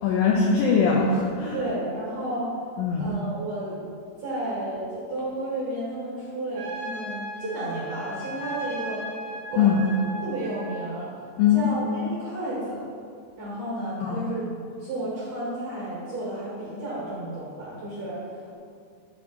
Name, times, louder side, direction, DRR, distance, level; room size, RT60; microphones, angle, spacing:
voice 1, 0.0-1.7 2.8-3.2 9.6-9.8 11.4-11.7 14.0-14.3, left 6 dB, 85° left, -2 dB, 2.0 m, -21 dB
voice 2, 1.5-2.4 3.0-3.8 4.2-4.8 5.1-9.0 9.5-9.9 10.2-11.1 11.5-12.8 13.4-14.4 14.8-18.2, right 1 dB, 50° right, -9 dB, 2.1 m, -32 dB
Trumpet, 6.5-10.9, right 2 dB, 75° right, 2.7 m, -36 dB
10.0 x 3.4 x 3.8 m, 2.3 s
omnidirectional pair, 4.8 m